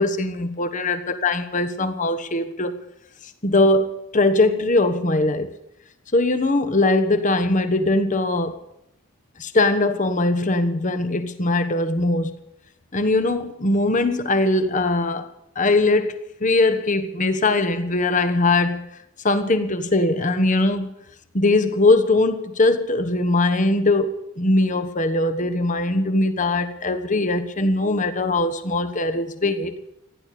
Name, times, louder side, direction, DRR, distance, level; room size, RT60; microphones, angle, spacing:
voice 1, 0.0-2.7 3.4-5.5 6.1-8.5 9.4-12.3 12.9-15.3 15.6-18.9 19.2-20.9 21.3-29.7, left 2 dB, 35° left, 1.2 m, -21 dB
15.5 x 11.0 x 8.5 m
head